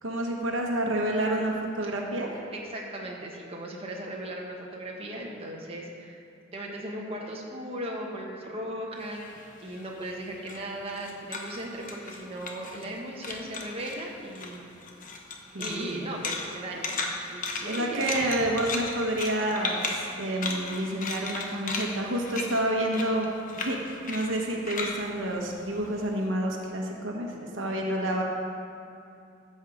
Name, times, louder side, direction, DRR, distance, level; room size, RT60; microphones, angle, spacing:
voice 1, 0.0-2.4 15.5-16.1 17.6-28.2, right 1 dB, 70° right, 0 dB, 1.2 m, -29 dB
voice 2, 2.5-6.2 6.5-14.6 15.6-17.0 17.3-18.0, right 1 dB, 30° right, -2 dB, 1.2 m, -37 dB
sound 1, 9.0-13.0 13.2-14.0 14.3-26.2, left 3 dB, 40° left, 1.0 m, -36 dB
14.5 x 5.6 x 5.0 m, 2.7 s
head